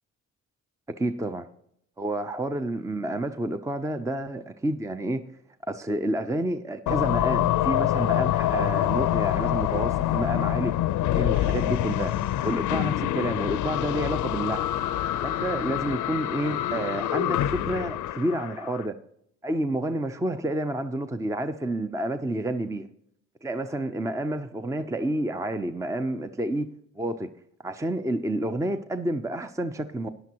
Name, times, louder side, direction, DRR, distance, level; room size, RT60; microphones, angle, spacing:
voice 1, 0.9-1.5 2.0-5.2 5.7-10.7 11.1-12.1 12.4-14.7 15.2-18.9 19.4-22.9 23.4-26.7 27.0-27.3 27.6-30.1, right 1 dB, 10° right, 10 dB, 0.6 m, -29 dB
sound 1, 6.9-18.8, left 13 dB, 80° left, 0.6 m, -26 dB
13.5 x 10.5 x 2.9 m, 0.72 s
cardioid pair, 90°, 30 cm